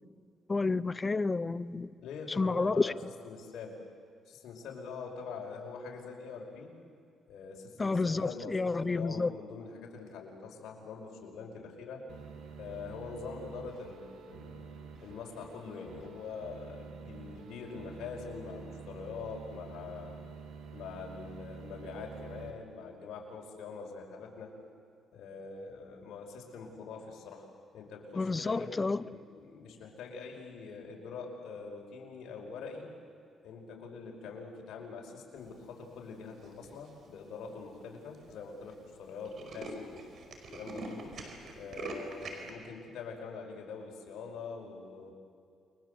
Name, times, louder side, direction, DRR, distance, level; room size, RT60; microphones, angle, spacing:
voice 1, 0.5-1.9 2.4-2.9 7.8-9.3 28.1-29.0, left 3 dB, 25° left, 17 dB, 0.7 m, -30 dB
voice 2, 2.0-3.0 3.2-3.8 4.3-6.7 7.3-12.0 12.6-14.6 15.0-20.2 20.7-24.5 25.1-27.5 27.7-28.8 29.1-32.9 33.4-39.9 40.5-41.1 41.6-45.1, left 5 dB, 80° left, 0 dB, 5.4 m, -44 dB
sound 1, 12.1-22.5, right 6 dB, 75° right, 2.9 m, -48 dB
Tools, 36.4-36.9 37.5-37.6 37.8-37.9 38.1-38.3 38.6-38.8 39.0-42.5, right 2 dB, 60° right, 4.9 m, -43 dB
29.5 x 23.0 x 8.1 m, 2.3 s
cardioid pair, 90°, 0 cm